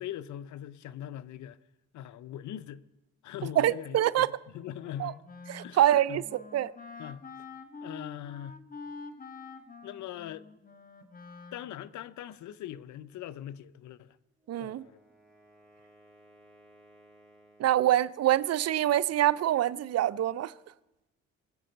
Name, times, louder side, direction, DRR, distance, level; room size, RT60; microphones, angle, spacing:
voice 1, 0.0-1.6 1.9-2.8 3.2-5.2 5.6-6.2 7.0-7.2 7.8-8.6 9.8-10.5 11.5-14.2 14.6-15.0, left 11 dB, 70° left, 0.7 m, -41 dB
voice 2, 3.6-4.3 5.0-5.1 5.5-6.7 14.5-14.8 17.6-20.5, right 12 dB, 55° right, 0.6 m, -25 dB
Wind instrument woodwind instrument, 4.8-12.1, left 4 dB, 30° left, 1.3 m, -47 dB
Wind instrument woodwind instrument 2, 14.4-17.9, right 1 dB, 5° left, 5.7 m, -60 dB
22.5 x 7.6 x 5.2 m
cardioid pair, 90°, 30 cm